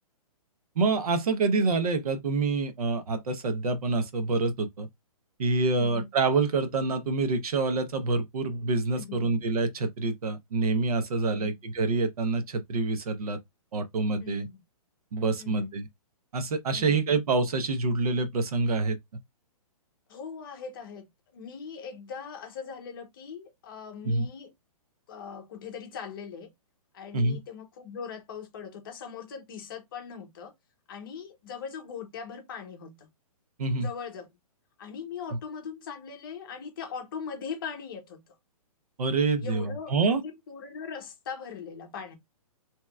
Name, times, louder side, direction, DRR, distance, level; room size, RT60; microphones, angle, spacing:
voice 1, 0.8-4.9 5.4-13.4 13.7-14.5 15.1-15.9 16.3-19.0 24.0-24.3 27.1-27.4 33.6-33.9 39.0-40.2, right 3 dB, 75° right, 0.8 m, -27 dB
voice 2, 5.8-6.1 8.9-9.5 11.3-11.5 14.2-14.6 15.4-15.7 16.7-17.2 20.1-24.5 25.1-26.5 26.9-30.5 30.9-33.1 33.8-34.3 34.8-38.2 39.4-42.2, left 6 dB, 35° left, 0.8 m, -40 dB
3.3 x 2.9 x 2.3 m
hypercardioid pair, 170°, 19 cm